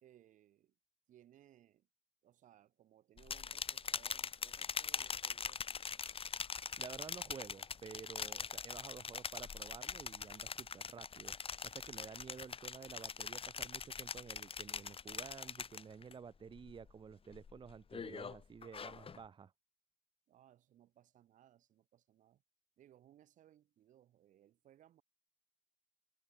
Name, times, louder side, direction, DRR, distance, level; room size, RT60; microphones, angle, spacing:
voice 1, 0.0-0.7 1.1-1.9 2.2-6.0 20.3-22.4 22.8-25.0, right 12 dB, 90° right, 2.5 m, -65 dB
sound 1, 3.2-16.1 16.5-16.9 17.3-19.2, left 6 dB, 45° left, 0.9 m, -43 dB
voice 2, 6.8-11.4 11.6-19.5, right 6 dB, 40° right, 0.5 m, -52 dB
cardioid pair, 60°, 13 cm